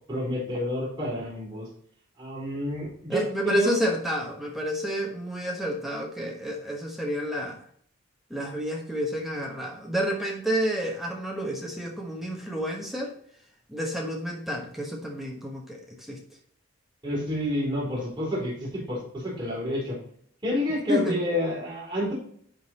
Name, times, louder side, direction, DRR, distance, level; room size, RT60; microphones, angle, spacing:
voice 1, 0.1-1.7 2.2-3.7 17.0-20.0 20.4-22.1, equal, 25° right, -6 dB, 3.6 m, -29 dB
voice 2, 3.1-7.6 8.3-13.1 13.7-16.2 20.9-21.2, equal, ahead, -1 dB, 1.2 m, -30 dB
10.0 x 3.9 x 4.2 m, 0.62 s
head